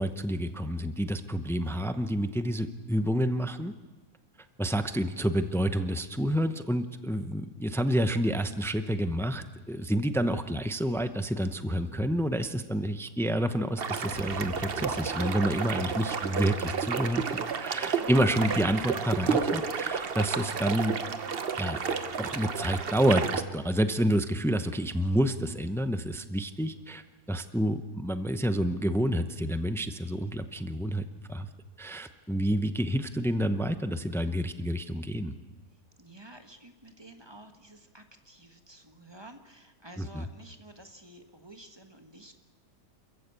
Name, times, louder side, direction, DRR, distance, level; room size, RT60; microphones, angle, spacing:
voice 1, 0.0-3.7 4.6-20.9 21.6-21.8 22.2-31.5 31.8-35.3 40.0-40.2, equal, 5° left, 10 dB, 0.3 m, -29 dB
sound 1, 13.8-23.4, right 6 dB, 40° right, 1.0 m, -31 dB
sound 2, 14.0-18.3, left 1 dB, 55° left, 3.5 m, -48 dB
voice 2, 36.0-42.3, right 1 dB, 15° right, 6 dB, 1.3 m, -51 dB
28.0 x 14.5 x 8.3 m, 1.2 s
omnidirectional pair, 1.7 m